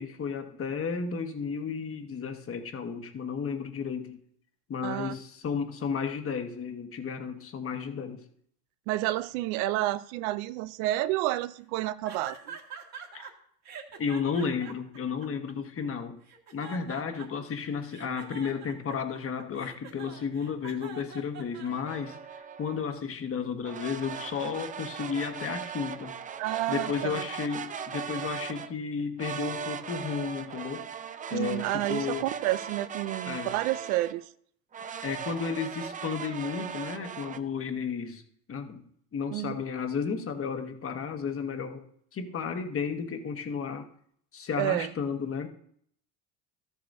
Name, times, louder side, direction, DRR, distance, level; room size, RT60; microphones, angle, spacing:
voice 1, 0.0-4.2 4.7-8.2 13.1-13.3 14.0-16.2 16.5-26.2 26.7-30.9 31.3-32.3 33.3-33.5 35.0-38.2 38.5-38.8 39.1-41.8 42.1-43.9 44.3-45.5, left 6 dB, 35° left, 1.3 m, -33 dB
voice 2, 4.8-5.1 8.9-12.6 26.4-27.3 31.3-34.2 39.3-39.6 44.6-44.9, right 16 dB, 85° right, 0.6 m, -30 dB
sound 1, 12.1-13.3 13.7-15.8 16.2-17.5 17.9-22.2, right 6 dB, 40° right, 1.7 m, -45 dB
sound 2, 21.7-22.9 23.6-28.7 29.2-34.2 34.7-37.4, right 7 dB, 20° right, 0.4 m, -39 dB
13.5 x 8.2 x 2.7 m
supercardioid pair, 105°, 40 cm